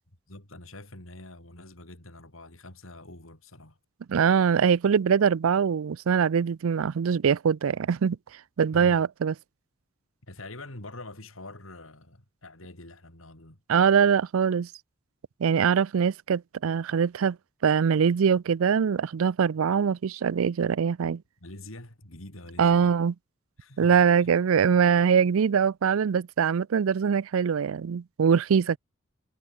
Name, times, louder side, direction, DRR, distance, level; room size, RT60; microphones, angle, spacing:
voice 1, 0.3-3.8 8.7-9.1 10.2-13.6 21.4-22.9 23.6-24.3, left 2 dB, 80° left, 4.7 m, -45 dB
voice 2, 4.1-8.2 8.6-9.3 13.7-14.7 15.4-17.4 17.6-21.2 22.6-23.1 23.8-28.8, right 7 dB, 80° right, 0.4 m, -23 dB
head